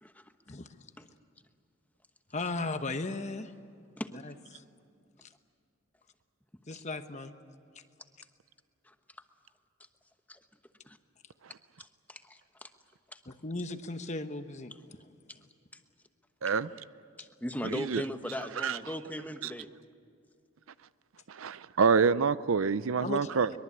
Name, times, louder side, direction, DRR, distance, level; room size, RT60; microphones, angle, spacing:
voice 1, 0.0-0.3 4.0-4.1 8.8-8.9 10.3-10.4 10.8-11.0 11.8-12.7 13.1-13.2 16.5-16.6 17.2-19.7, equal, 10° left, 7 dB, 1.1 m, -38 dB
voice 2, 2.3-3.5 4.2-4.6 6.7-7.3 13.3-14.7 23.0-23.3, left 2 dB, 35° left, 9 dB, 1.0 m, -36 dB
voice 3, 17.7-18.0 18.6-18.8 21.3-23.5, right 5 dB, 75° right, 16 dB, 0.6 m, -27 dB
23.5 x 22.0 x 8.5 m, 2.4 s
head